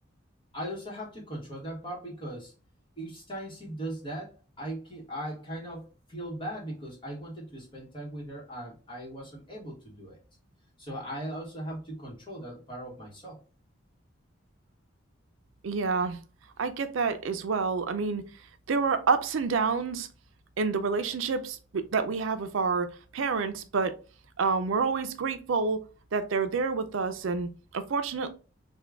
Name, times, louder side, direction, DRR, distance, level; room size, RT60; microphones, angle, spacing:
voice 1, 0.5-2.5 3.0-4.3 4.6-10.2 10.8-13.4, right 1 dB, 25° left, 1.0 m, -39 dB
voice 2, 15.6-16.2 16.6-18.2 18.7-20.1 20.6-22.9 23.1-23.9 24.4-25.8 26.1-28.3, right 4 dB, 75° right, 0.4 m, -28 dB
3.5 x 2.2 x 3.3 m
head